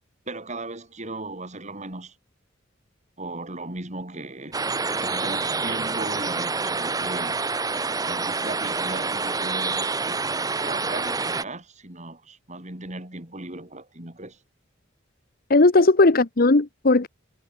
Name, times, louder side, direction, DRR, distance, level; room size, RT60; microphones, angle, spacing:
voice 1, 0.3-2.2 3.2-4.7 5.0-7.4 8.0-14.4 15.8-15.9, right 2 dB, 35° right, 5.7 m, -37 dB
sound 1, 4.5-11.4, right 4 dB, 20° right, 0.8 m, -27 dB
voice 2, 15.5-17.1, left 2 dB, 50° left, 1.0 m, -17 dB
head